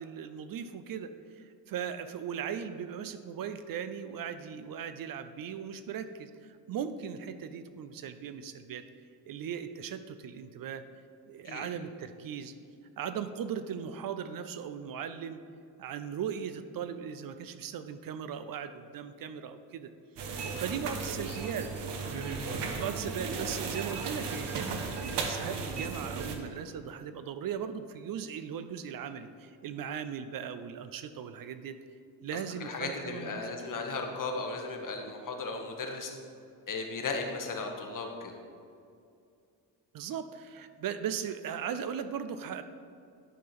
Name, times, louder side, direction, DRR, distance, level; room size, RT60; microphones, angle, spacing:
voice 1, 0.0-8.9 9.3-10.8 11.3-12.5 13.0-15.4 15.8-19.9 20.6-21.7 22.6-31.8 32.2-33.5 39.9-42.6, right 8 dB, 55° right, 10 dB, 0.6 m, -38 dB
sound 1, 20.2-26.4, right 4 dB, 75° right, 1.1 m, -35 dB
voice 2, 32.6-36.1 36.7-38.3, left 3 dB, 50° left, 3 dB, 1.3 m, -36 dB
11.0 x 3.7 x 6.0 m, 2.5 s
cardioid pair, 85°, 42 cm